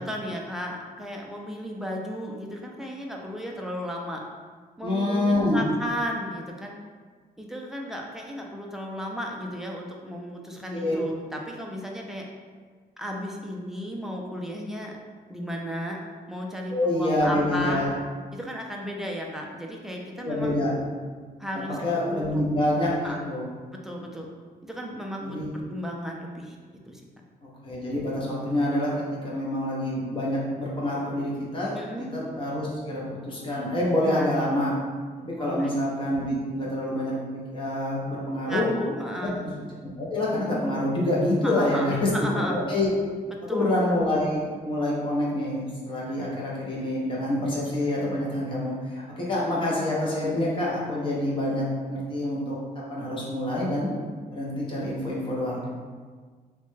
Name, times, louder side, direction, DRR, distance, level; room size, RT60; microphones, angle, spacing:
voice 1, 0.0-4.2 4.8-6.7 7.4-12.3 13.0-14.9 15.3-16.0 16.3-17.8 18.3-20.6 21.4-21.8 22.1-22.4 23.0-23.2 23.8-24.3 24.6-25.4 25.7-26.6 26.9-27.0 31.8-32.1 34.0-34.4 35.4-35.8 38.5-39.4 41.4-42.6 43.3-43.7, equal, 5° right, -1 dB, 0.3 m, -34 dB
voice 2, 4.8-5.6 10.7-11.0 16.7-17.9 20.2-20.7 21.5-23.4 25.2-25.5 27.4-34.7 35.2-37.2 37.5-38.6 39.4-39.5 40.0-42.9 43.5-52.6 52.9-53.9 54.3-55.6, left 1 dB, 30° left, -5 dB, 0.7 m, -27 dB
3.2 x 2.1 x 3.2 m, 1.5 s
wide cardioid pair, 150°, 16 cm